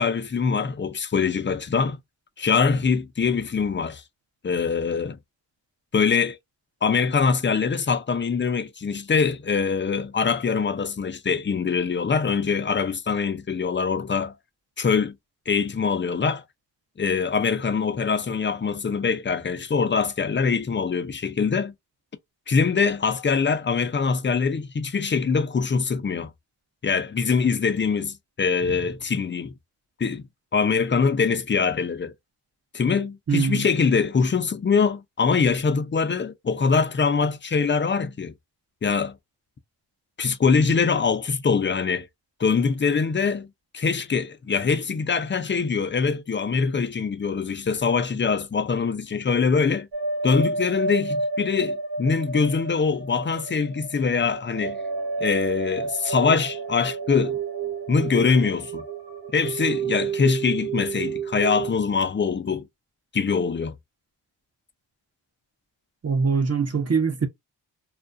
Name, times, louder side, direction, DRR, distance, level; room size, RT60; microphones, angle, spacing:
voice 1, 0.0-2.0 2.4-4.0 4.4-5.2 5.9-6.4 6.8-14.3 14.8-15.1 15.5-16.4 17.0-21.7 22.5-26.3 26.8-29.5 30.0-30.3 30.5-32.1 32.7-38.3 38.8-39.2 40.2-42.1 42.4-43.5 43.7-49.9 50.2-54.8 55.2-57.4 57.9-58.8 59.3-62.6 63.1-63.8, left 5 dB, 25° left, 0.5 m, -23 dB
voice 2, 33.3-33.7 66.0-67.3, right 5 dB, 35° right, 0.8 m, -22 dB
sound 1, 49.9-61.7, right 4 dB, 65° right, 1.1 m, -30 dB
2.3 x 2.2 x 2.5 m
cardioid pair, 40°, 43 cm